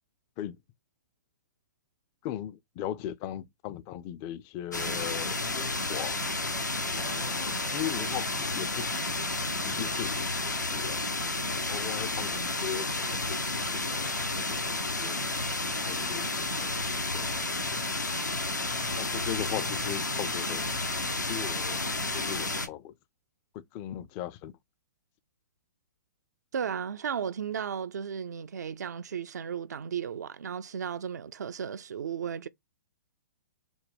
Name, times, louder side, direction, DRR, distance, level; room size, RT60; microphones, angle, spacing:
voice 1, 2.2-6.2 7.0-8.9 9.6-11.0 11.7-15.2 15.8-17.3 19.0-20.6 21.3-22.9 23.5-24.5, left 11 dB, 30° left, 0.4 m, -38 dB
sound 1, 4.7-22.7, left 2 dB, 90° left, 0.7 m, -31 dB
voice 2, 26.5-32.5, right 7 dB, 70° right, 0.4 m, -35 dB
3.8 x 2.1 x 3.4 m
figure-of-eight pair, 115°, 9 cm